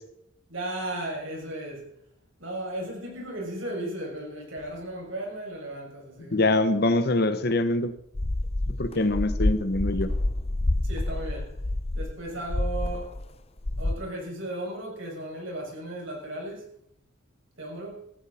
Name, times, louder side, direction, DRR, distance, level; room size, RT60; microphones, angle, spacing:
voice 1, 0.5-1.9 2.4-6.4 10.8-11.6 11.9-13.2 13.8-16.7 17.6-18.0, right 1 dB, 70° right, -1 dB, 6.8 m, -35 dB
voice 2, 6.3-7.9 8.8-10.1, left 2 dB, 50° left, 11 dB, 1.0 m, -24 dB
sound 1, 8.1-13.3 13.6-13.9, left 1 dB, 30° left, 0.6 m, -28 dB
15.5 x 15.5 x 4.3 m, 0.73 s
head